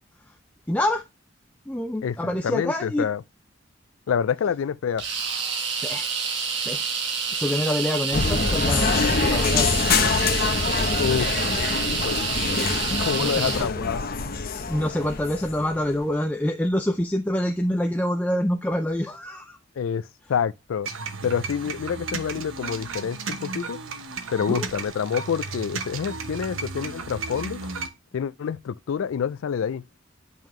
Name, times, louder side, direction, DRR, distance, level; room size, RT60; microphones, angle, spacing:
voice 1, 0.7-1.0 1.7-3.1 5.8-6.1 6.6-6.8 7.3-9.8 13.2-13.7 14.7-19.6 24.5-24.7, left 1 dB, 10° left, 0.4 m, -26 dB
voice 2, 2.0-3.2 4.1-5.0 11.0-11.5 12.0-12.6 13.0-14.0 19.8-20.9 21.2-23.8 24.3-27.7 28.1-29.8, left 7 dB, 80° left, 0.4 m, -27 dB
sound 1, 5.0-13.7, right 5 dB, 60° right, 1.5 m, -28 dB
sound 2, 8.1-16.0, left 4 dB, 50° left, 0.8 m, -25 dB
sound 3, 20.8-27.9, right 4 dB, 90° right, 1.0 m, -34 dB
9.0 x 5.5 x 3.1 m
head